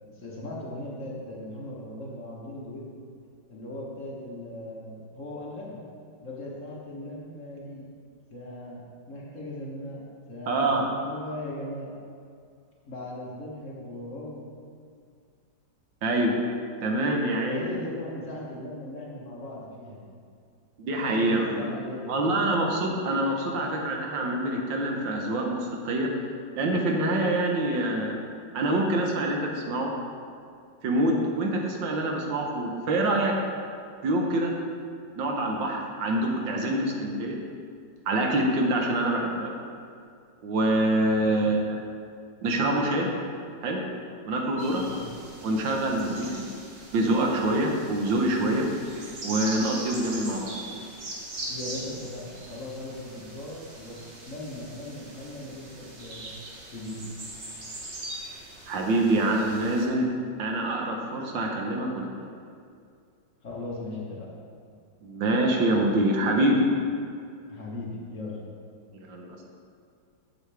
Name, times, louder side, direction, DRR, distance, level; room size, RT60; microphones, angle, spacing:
voice 1, 0.0-3.0 3.5-5.8 6.2-7.8 8.3-10.0 10.3-10.7 11.0-11.9 12.9-14.4 17.5-20.1 21.0-22.4 23.5-23.8 41.2-41.5 44.9-45.1 51.5-54.0 54.3-56.3 56.7-57.3 63.4-64.3 67.5-68.4, left 1 dB, 45° left, -4 dB, 1.3 m, -38 dB
voice 2, 10.5-10.8 16.0-16.4 16.8-17.7 20.8-21.7 22.1-26.1 26.6-28.2 28.5-29.9 30.8-33.4 34.0-34.5 35.2-37.4 38.1-39.5 40.4-41.8 42.4-43.1 43.6-43.8 44.2-44.8 45.4-46.4 46.9-48.7 49.2-50.5 58.7-60.1 60.4-62.1 65.0-66.7 69.1-69.4, right 1 dB, 75° right, 0 dB, 1.6 m, -25 dB
sound 1, 44.6-59.9, right 1 dB, 40° right, 1.2 m, -41 dB
8.0 x 7.8 x 3.4 m, 2.3 s
omnidirectional pair, 2.1 m